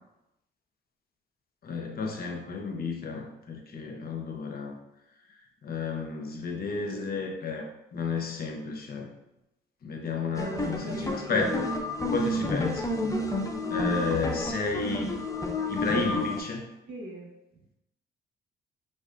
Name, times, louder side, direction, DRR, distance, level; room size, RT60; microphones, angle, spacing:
voice 1, 1.6-4.7 5.6-9.1 9.8-11.6 12.1-13.0 13.7-15.1 15.7-16.6, left 4 dB, 50° left, 2 dB, 0.8 m, -32 dB
voice 2, 10.3-11.6 12.4-12.6 16.8-17.3, right 1 dB, 65° right, -2 dB, 1.3 m, -37 dB
sound 1, 10.4-16.4, left 2 dB, 15° left, 0.5 m, -30 dB
5.3 x 2.5 x 2.6 m, 0.89 s
cardioid pair, 90°, 20 cm